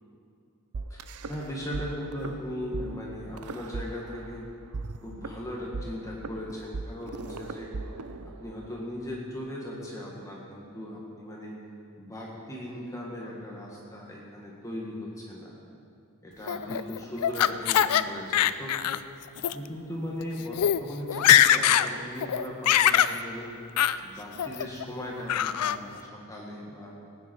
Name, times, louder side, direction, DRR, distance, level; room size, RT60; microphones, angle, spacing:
sound 1, 0.7-1.8 2.1-2.3 2.7-2.8 3.4-4.4 4.7-8.7, right 4 dB, 85° right, 0.6 m, -37 dB
voice 1, 1.3-4.4 5.0-7.7 8.2-11.6 12.0-15.6 16.2-18.8 19.5-23.5 24.0-26.9, left 1 dB, 15° left, -4 dB, 1.7 m, -38 dB
Laughter, 16.5-18.0 18.3-19.0 19.4-19.5 20.2-20.3 20.5-20.8 21.1-21.9 22.2-23.2 23.8-24.0 24.4-24.8 25.3-25.8, left 10 dB, 80° left, 0.4 m, -22 dB
19.0 x 9.4 x 4.5 m, 2.5 s
head